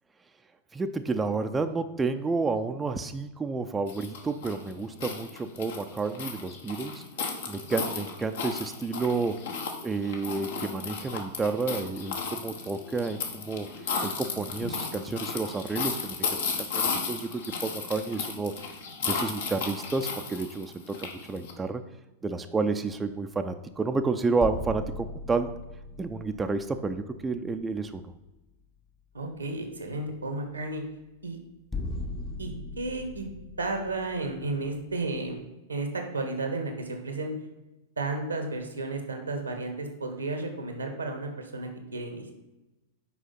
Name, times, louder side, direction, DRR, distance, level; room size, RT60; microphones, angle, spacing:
voice 1, 0.7-7.0 7.5-9.4 9.8-13.7 14.0-16.2 16.6-18.5 19.0-21.8 22.2-25.5 26.0-28.0, right 4 dB, 15° right, 7 dB, 0.5 m, -30 dB
sound 1, 3.9-21.5, left 5 dB, 65° left, 1.3 m, -34 dB
sound 2, 24.4-27.9 28.2-28.3 31.7-35.3, left 2 dB, 15° left, 0.7 m, -39 dB
voice 2, 29.1-30.8 31.2-31.4 32.4-33.3 33.6-35.4 35.7-37.3 38.0-42.3, right 2 dB, 90° right, 5 dB, 1.3 m, -33 dB
6.1 x 4.9 x 5.7 m, 1.0 s
figure-of-eight pair, 95°, 0 cm